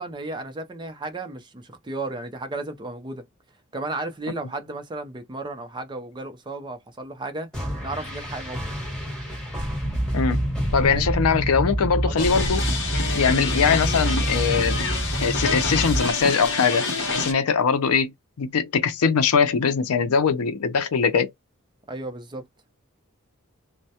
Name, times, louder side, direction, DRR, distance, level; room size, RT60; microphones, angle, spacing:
voice 1, 0.0-3.2 3.7-7.5 7.8-8.6 10.8-11.1 12.0-12.4 21.9-22.4, right 2 dB, 20° right, 0.5 m, -34 dB
sound 1, 7.5-11.8, equal, 5° left, 1.3 m, -32 dB
sound 2, 9.8-16.0, right 1 dB, 20° left, 1.1 m, -26 dB
voice 2, 10.7-12.6 13.1-14.8 15.2-18.1 18.4-21.3, left 6 dB, 75° left, 0.5 m, -21 dB
sound 3, 12.2-17.3, left 3 dB, 55° left, 0.8 m, -28 dB
2.1 x 2.1 x 2.7 m
head